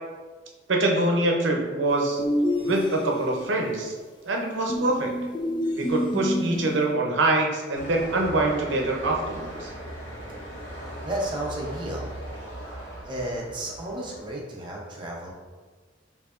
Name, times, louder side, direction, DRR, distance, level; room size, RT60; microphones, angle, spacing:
voice 1, 0.7-2.2 2.6-3.9 4.3-5.1 5.7-9.7, right 2 dB, 80° right, 1 dB, 0.6 m, -24 dB
sound 1, 2.2-3.5 4.7-6.9, left 1 dB, 25° left, 0.4 m, -28 dB
sound 2, 7.7-14.3, equal, 85° left, 1.3 m, -38 dB
voice 2, 11.0-12.1 13.0-15.3, right 1 dB, 25° right, -3 dB, 0.6 m, -32 dB
4.6 x 2.7 x 2.5 m, 1.4 s
head